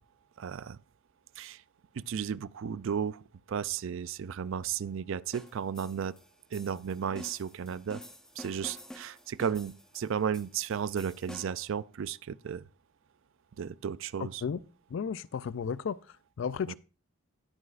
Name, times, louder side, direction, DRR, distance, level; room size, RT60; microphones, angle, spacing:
voice 1, 0.4-0.8 1.4-1.6 1.9-3.2 3.5-6.2 6.5-8.0 8.4-12.6 13.6-14.4 16.7-16.8, right 7 dB, 65° right, 0.4 m, -34 dB
sound 1, 5.3-11.7, left 1 dB, 5° left, 0.9 m, -49 dB
voice 2, 14.9-16.0 16.4-16.7, left 6 dB, 60° left, 0.3 m, -33 dB
18.5 x 6.2 x 2.4 m
head